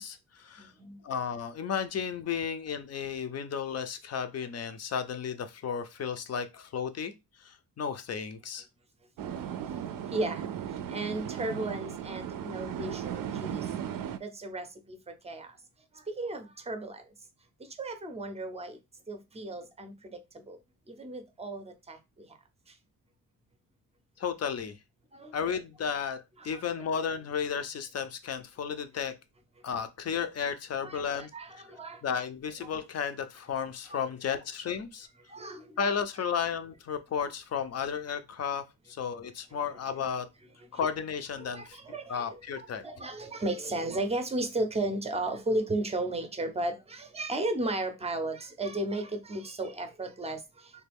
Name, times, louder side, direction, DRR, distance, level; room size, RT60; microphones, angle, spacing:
voice 1, 0.0-0.7 1.0-7.1 7.4-8.6 24.2-24.8 25.3-29.2 29.6-31.3 32.0-35.1 35.8-40.3 40.7-41.8 42.1-42.8, left 7 dB, 45° left, 0.6 m, -33 dB
voice 2, 0.6-1.0 10.1-10.5 10.9-13.7 14.2-15.0 15.2-15.5 16.1-17.0 17.8-18.8 19.1-20.2 20.5-20.6 20.9-22.0 25.1-25.3 26.4-26.6 30.8-31.0 31.3-32.0 32.6-32.7 33.9-34.0 35.3-35.7 41.4-50.4, right 2 dB, 15° right, 0.6 m, -34 dB
sound 1, 9.2-14.2, right 9 dB, 60° right, 0.5 m, -36 dB
3.3 x 2.3 x 3.4 m
cardioid pair, 120°, 37 cm